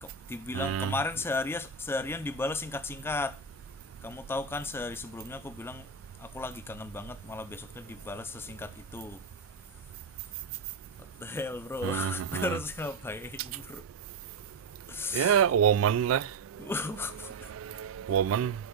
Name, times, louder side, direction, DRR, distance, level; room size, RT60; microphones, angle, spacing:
voice 1, 0.0-3.4 4.0-5.8 6.2-9.2 11.2-13.8 14.9-15.5 16.6-17.5, left 3 dB, 10° left, 0.3 m, -35 dB
voice 2, 0.5-0.9 11.8-12.5 15.1-16.2 17.8-18.5, right 9 dB, 85° right, 0.3 m, -25 dB
7.8 x 3.5 x 6.4 m
head